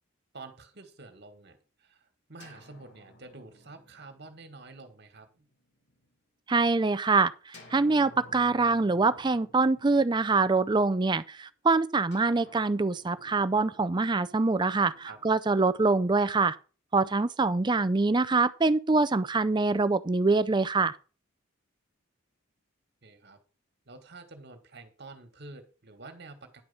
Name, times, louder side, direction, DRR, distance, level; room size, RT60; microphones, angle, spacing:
voice 1, 0.3-5.5 15.0-15.2 23.0-23.4 23.9-26.6, right 3 dB, 50° right, 1.7 m, -48 dB
sound 1, 2.4-6.2 7.5-11.1 12.1-16.2, left 1 dB, 55° left, 2.0 m, -56 dB
voice 2, 6.5-16.6 16.9-21.0, right 3 dB, 20° right, 0.4 m, -25 dB
10.5 x 4.7 x 6.9 m
head